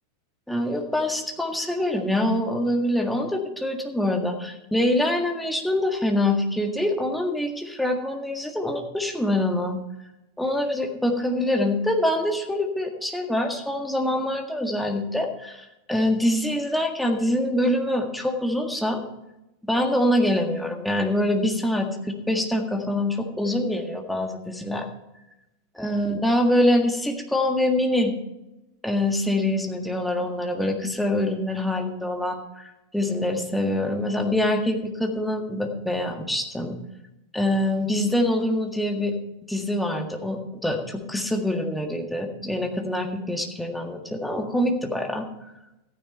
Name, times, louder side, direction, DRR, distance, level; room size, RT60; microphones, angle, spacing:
voice 1, 0.5-9.8 10.4-19.0 19.6-24.9 25.8-28.1 28.8-36.8 37.3-39.1 39.5-45.2, left 1 dB, 5° left, 2 dB, 1.8 m, -25 dB
14.5 x 9.8 x 4.3 m, 0.93 s
figure-of-eight pair, 90°, 0 cm